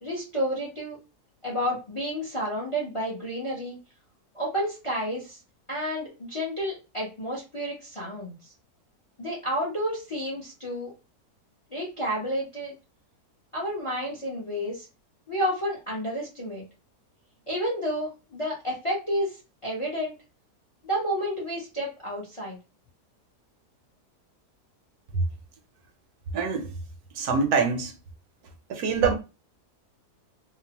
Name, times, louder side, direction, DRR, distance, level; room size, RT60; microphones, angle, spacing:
voice 1, 0.0-1.0 1.4-3.8 4.3-5.4 5.7-8.5 9.2-10.9 11.7-12.8 13.5-14.9 15.3-16.6 17.5-20.1 20.8-22.6, equal, 35° left, 0.5 m, -30 dB
voice 2, 26.3-26.7 27.2-27.9 28.7-29.1, right 5 dB, 75° right, 1.1 m, -24 dB
2.8 x 2.0 x 2.8 m
omnidirectional pair, 1.7 m